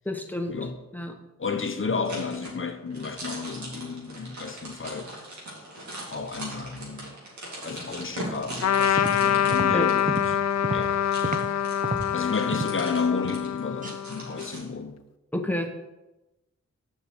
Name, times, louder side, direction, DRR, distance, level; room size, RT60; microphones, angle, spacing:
voice 1, 0.0-0.6 0.9-1.1 9.7-9.9 15.3-15.7, left 1 dB, 5° left, 1.2 m, -29 dB
voice 2, 1.4-5.1 6.1-7.2 7.6-10.4 10.7-11.4 12.1-15.0, left 5 dB, 45° left, 1.0 m, -32 dB
sound 1, 2.1-14.6, right 1 dB, 75° right, 2.8 m, -40 dB
Trumpet, 8.6-14.5, left 9 dB, 65° left, 0.5 m, -25 dB
sound 2, 8.8-11.6 11.8-12.9 13.2-13.6 13.8-14.0, right 2 dB, 30° right, 0.8 m, -33 dB
6.9 x 5.5 x 6.2 m
cardioid pair, 70°, 29 cm